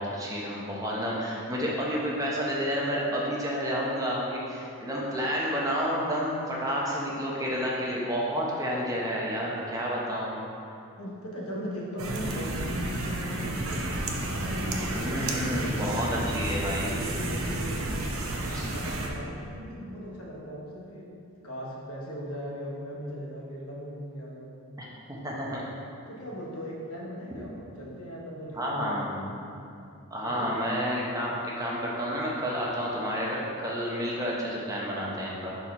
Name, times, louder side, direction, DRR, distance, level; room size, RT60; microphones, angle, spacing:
voice 1, 0.0-10.4 14.9-16.9 18.5-18.7 25.1-25.6 28.5-29.2 30.1-35.6, equal, 15° right, -4 dB, 0.8 m, -30 dB
voice 2, 11.0-13.9 14.2-16.4 16.7-17.9 18.3-21.1 21.4-24.6 26.1-29.3 30.2-30.6, equal, 90° left, -3 dB, 1.1 m, -38 dB
Store Ambience in produce store, 12.0-19.1, right 2 dB, 70° right, 0.7 m, -31 dB
4.4 x 4.3 x 5.4 m, 2.6 s
head